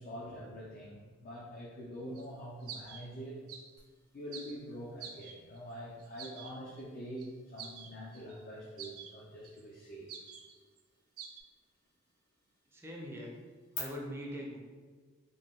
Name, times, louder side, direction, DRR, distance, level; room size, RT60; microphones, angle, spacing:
voice 1, 0.0-3.4 4.1-10.1, equal, 40° left, -4 dB, 0.5 m, -45 dB
sound 1, 2.1-2.2 2.6-3.0 3.5-3.8 4.3-4.6 5.0-5.6 6.0-6.5 6.8-6.9 7.2-7.3 7.6-8.4 8.8-9.1 9.4-9.6 10.1-10.8 11.2-11.4, right 7 dB, 80° right, 0.4 m, -47 dB
sound 2, 3.8-13.8, left 11 dB, 70° left, 1.2 m, -57 dB
voice 2, 12.7-13.3 13.7-14.6, equal, 10° right, -2 dB, 0.5 m, -42 dB
3.7 x 2.2 x 3.6 m, 1.5 s
head